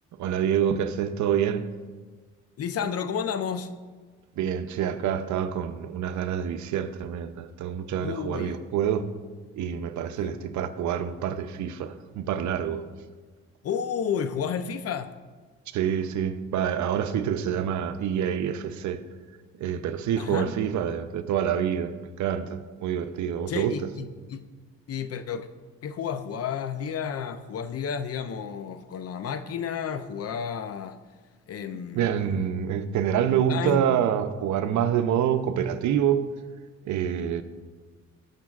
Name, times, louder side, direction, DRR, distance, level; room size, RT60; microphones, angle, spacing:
voice 1, 0.2-1.7 4.4-9.0 9.6-12.8 15.7-19.0 19.5-23.9 32.0-36.3 36.8-37.4, right 9 dB, 70° right, 0.6 m, -27 dB
voice 2, 2.6-3.7 8.0-8.6 10.2-10.3 13.6-15.1 20.2-20.5 23.5-24.5 24.9-25.5 25.8-31.0 31.5-32.4 32.7-32.8 33.5-33.8, left 7 dB, 50° left, 0.6 m, -31 dB
16.5 x 6.6 x 2.4 m
cardioid pair, 90°, 30 cm